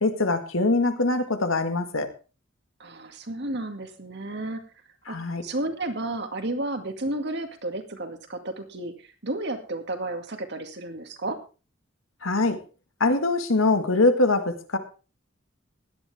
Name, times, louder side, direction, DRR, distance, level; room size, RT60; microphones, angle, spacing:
voice 1, 0.0-2.1 5.1-5.4 12.2-12.6 13.0-14.8, left 2 dB, 90° left, 7 dB, 1.9 m, -23 dB
voice 2, 2.8-4.6 5.1-11.4, right 2 dB, 55° right, 6 dB, 2.2 m, -32 dB
17.0 x 11.5 x 3.5 m, 0.33 s
head